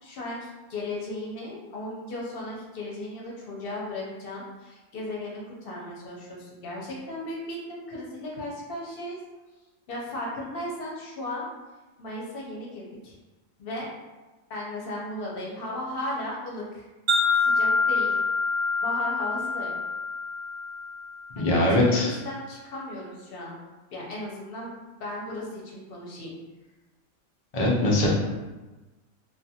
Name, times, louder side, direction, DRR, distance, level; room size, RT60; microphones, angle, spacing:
voice 1, 0.0-9.2 9.9-11.5 12.0-13.1 13.6-13.9 14.5-16.9 17.4-18.2 18.8-19.8 21.4-23.6 23.9-26.3, left 1 dB, 55° left, -4 dB, 0.7 m, -36 dB
Wind chime, 17.1-21.4, left 3 dB, 60° right, 0.7 m, -26 dB
voice 2, 21.4-22.1 27.5-28.1, left 1 dB, 75° left, -4 dB, 0.3 m, -21 dB
2.4 x 2.3 x 2.7 m, 1.2 s
omnidirectional pair, 1.4 m